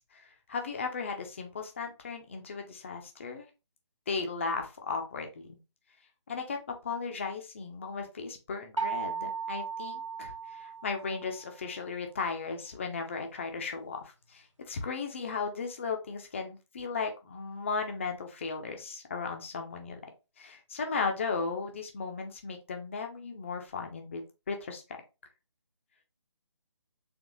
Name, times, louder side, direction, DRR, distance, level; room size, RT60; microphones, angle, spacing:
voice 1, 0.0-3.5 4.1-5.6 6.3-6.6 6.8-20.0 20.4-24.2 24.5-25.0, left 4 dB, 25° left, 4 dB, 0.6 m, -36 dB
sound 1, 8.8-11.5, right 6 dB, 80° right, 1.2 m, -36 dB
4.0 x 3.1 x 3.0 m, 0.28 s
figure-of-eight pair, 150°, 16 cm